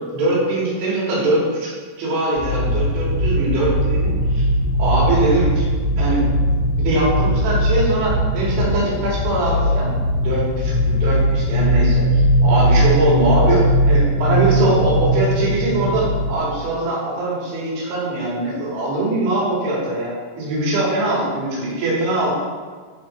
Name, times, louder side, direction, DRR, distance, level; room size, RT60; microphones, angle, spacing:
voice 1, 0.1-1.7 2.0-4.5 4.8-5.7 6.0-6.3 6.8-9.9 10.2-12.1 12.4-22.3, right 2 dB, 65° right, -6 dB, 4.9 m, -22 dB
sound 1, 2.4-16.4, equal, 75° left, 2.9 m, -19 dB
11.0 x 5.8 x 4.7 m, 1.5 s
omnidirectional pair, 5.9 m